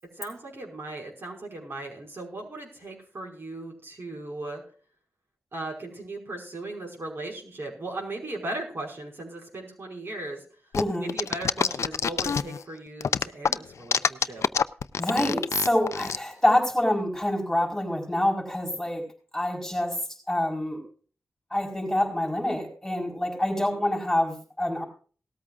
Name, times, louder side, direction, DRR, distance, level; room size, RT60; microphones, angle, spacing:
voice 1, 0.0-4.6 5.5-10.4 11.0-14.5, right 2 dB, 50° right, 1 dB, 5.2 m, -37 dB
sound 1, 10.7-12.6 13.0-16.2, left 6 dB, 85° left, 0.4 m, -25 dB
voice 2, 10.7-11.1 15.0-19.0 19.3-20.0 20.3-20.8 21.5-24.8, left 1 dB, 10° left, 1 dB, 4.4 m, -26 dB
18.0 x 13.5 x 2.4 m, 0.40 s
wide cardioid pair, 95°, 5 cm